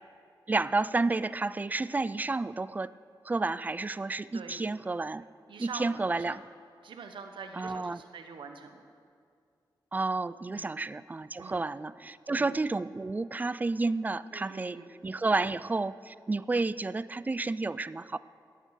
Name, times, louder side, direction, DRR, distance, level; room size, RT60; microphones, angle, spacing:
voice 1, 0.5-2.9 3.3-5.2 5.6-6.4 7.5-8.0 9.9-14.8 15.0-18.2, right 3 dB, 20° right, 17 dB, 0.3 m, -31 dB
voice 2, 4.3-4.6 5.5-6.4 6.8-8.9 10.5-10.8 11.4-11.7 12.3-12.5 14.3-14.9 15.2-15.4, right 5 dB, 85° right, 6 dB, 1.1 m, -45 dB
16.5 x 9.1 x 6.6 m, 2.3 s
wide cardioid pair, 110°, 8 cm